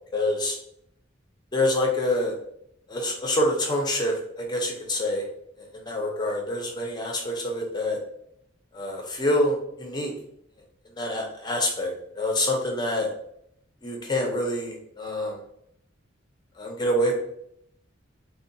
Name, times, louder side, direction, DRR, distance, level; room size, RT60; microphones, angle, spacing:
voice 1, 0.1-0.6 1.5-2.4 2.9-5.2 5.6-8.0 8.7-10.1 11.0-13.1 13.8-15.4 16.6-17.1, left 1 dB, 20° left, 1 dB, 0.6 m, -26 dB
3.7 x 2.1 x 2.6 m, 0.72 s
head